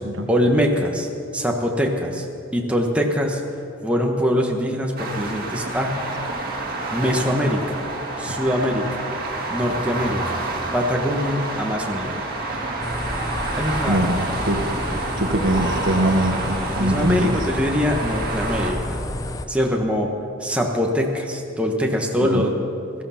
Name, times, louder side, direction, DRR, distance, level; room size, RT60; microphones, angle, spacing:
voice 1, 0.3-1.1 1.3-2.2 2.5-3.4 3.8-6.0 6.5-6.6 6.9-7.8 8.2-9.0 9.5-10.4 10.7-12.2 13.6-14.2 16.8-19.0 19.5-20.1 20.4-22.5, equal, 5° right, 1 dB, 1.3 m, -23 dB
sound 1, 5.0-18.7, right 2 dB, 50° right, 2.2 m, -28 dB
sound 2, 12.8-19.5, left 1 dB, 20° left, 0.7 m, -30 dB
voice 2, 13.9-14.7 15.2-17.3 22.2-22.5, right 1 dB, 85° right, 5 dB, 1.5 m, -22 dB
17.0 x 14.0 x 5.9 m, 2.7 s
head